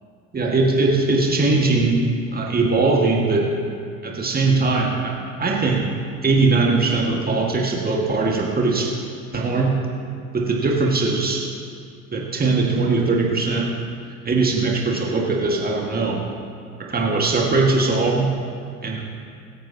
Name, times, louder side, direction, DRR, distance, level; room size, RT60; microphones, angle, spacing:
voice 1, 0.3-3.5 4.0-5.9 6.2-8.9 9.3-9.8 10.3-11.4 12.1-13.7 14.3-16.2 16.8-18.3 18.8-19.0, right 3 dB, 20° right, -1 dB, 1.9 m, -20 dB
23.0 x 9.1 x 2.9 m, 2.3 s
figure-of-eight pair, 65°, 42 cm